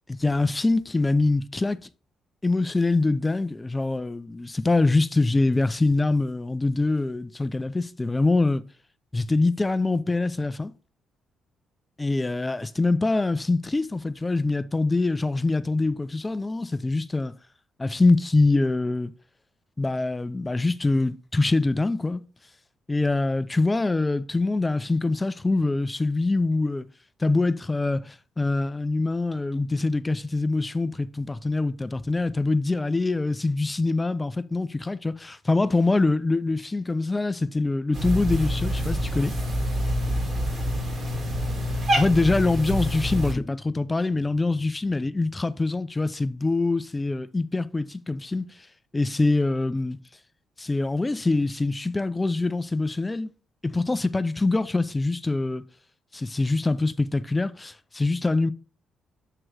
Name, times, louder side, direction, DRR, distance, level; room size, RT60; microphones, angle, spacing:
voice 1, 0.1-1.8 2.4-8.6 9.1-10.7 12.0-17.3 17.8-19.1 19.8-22.2 22.9-26.9 27.2-39.3 42.0-48.4 48.9-50.0 50.6-53.3 53.6-55.6 56.1-58.5, left 3 dB, 20° left, 0.4 m, -24 dB
Cat, 37.9-43.3, equal, 45° right, 2.1 m, -26 dB
7.6 x 3.0 x 4.7 m
cardioid pair, 90°, 0 cm